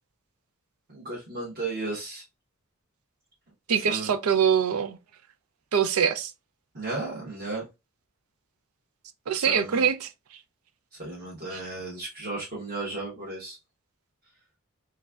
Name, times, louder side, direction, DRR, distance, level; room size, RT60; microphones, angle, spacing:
voice 1, 0.9-2.2 3.7-4.1 6.7-7.6 9.3-9.8 11.0-13.6, right 2 dB, 45° right, 1.4 m, -34 dB
voice 2, 3.7-5.0 5.7-6.3 9.3-10.1 11.5-11.6, right 7 dB, 85° right, 0.5 m, -24 dB
3.4 x 3.2 x 2.4 m
head